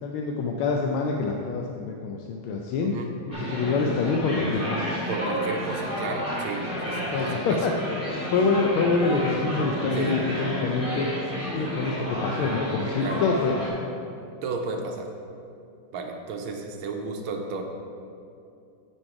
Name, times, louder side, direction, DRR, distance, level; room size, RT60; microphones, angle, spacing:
voice 1, 0.0-3.0 3.4-4.9 7.1-7.7 8.0-11.1 11.5-13.7, left 4 dB, 90° left, 1 dB, 1.5 m, -26 dB
voice 2, 2.8-3.5 5.1-7.7 10.0-10.2 13.0-13.2 14.4-15.1 15.9-17.6, right 4 dB, 75° right, 3 dB, 1.5 m, -33 dB
sound 1, 3.3-13.7, equal, 35° left, 2.4 m, -31 dB
8.6 x 5.4 x 4.7 m, 2.6 s
omnidirectional pair, 2.3 m